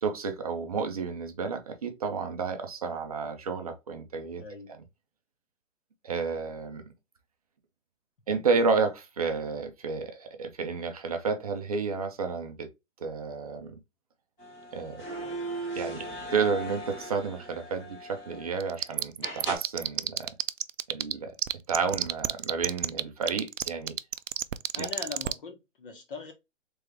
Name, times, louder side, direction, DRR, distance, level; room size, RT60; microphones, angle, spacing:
voice 1, 0.0-4.4 6.0-6.8 8.3-12.7 13.0-13.7 14.7-15.0 15.8-20.3 20.9-21.3 21.7-24.0 24.8-24.9, right 5 dB, 30° right, 0.6 m, -31 dB
voice 2, 4.4-4.7 24.7-26.3, left 4 dB, 45° left, 1.4 m, -40 dB
sound 1, 14.4-18.8 19.2-19.6, right 1 dB, 15° left, 1.1 m, -38 dB
sound 2, 18.6-21.1 21.4-25.3, right 12 dB, 80° right, 0.5 m, -28 dB
3.6 x 3.4 x 3.3 m
hypercardioid pair, 165°, 38 cm